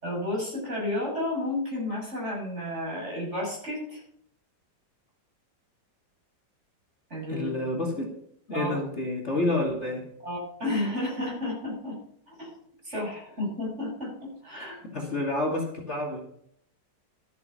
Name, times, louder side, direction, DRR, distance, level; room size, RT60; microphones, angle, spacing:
voice 1, 0.0-4.0 7.1-7.5 8.5-8.8 10.2-12.0 12.3-12.6 12.8-14.9, left 1 dB, 35° right, -3 dB, 7.2 m, -32 dB
voice 2, 7.3-8.1 8.5-10.1 14.5-16.2, left 2 dB, 40° left, 0 dB, 2.5 m, -29 dB
13.0 x 8.5 x 5.8 m, 0.68 s
omnidirectional pair, 2.0 m